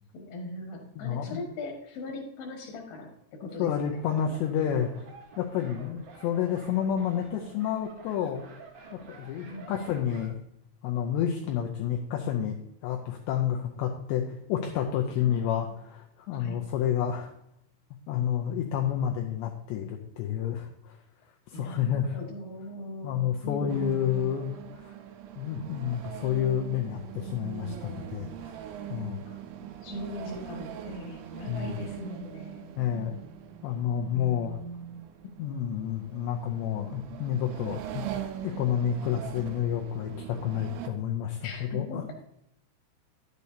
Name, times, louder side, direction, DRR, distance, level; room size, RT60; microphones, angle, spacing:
voice 1, 0.1-4.4 9.5-9.7 15.2-15.8 16.4-16.6 21.5-24.4 29.2-29.4 29.8-32.7 34.1-35.0 41.4-42.1, left 1 dB, 65° left, 1 dB, 2.6 m, -40 dB
voice 2, 1.0-1.4 3.6-4.9 5.4-8.4 8.9-10.4 10.8-12.6 12.8-17.3 18.1-21.0 21.5-22.2 23.0-24.9 25.4-28.6 28.9-29.2 31.5-31.8 32.8-33.1 33.6-34.6 35.4-38.0 38.4-42.2, left 9 dB, 85° left, 1 dB, 2.5 m, -30 dB
sound 1, 3.9-10.3, right 4 dB, 60° right, 2.3 m, -49 dB
sound 2, 23.7-40.9, right 11 dB, 90° right, 3.3 m, -42 dB
10.5 x 8.2 x 2.8 m, 0.76 s
omnidirectional pair, 5.9 m